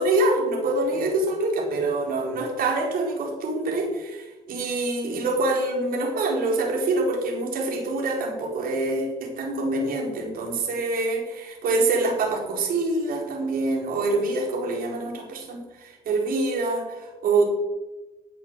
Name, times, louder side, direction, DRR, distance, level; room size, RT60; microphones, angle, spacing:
voice 1, 0.0-17.4, right 2 dB, 60° right, -1 dB, 4.5 m, -25 dB
12.0 x 8.3 x 7.4 m, 1.1 s
cardioid pair, 110°, 17 cm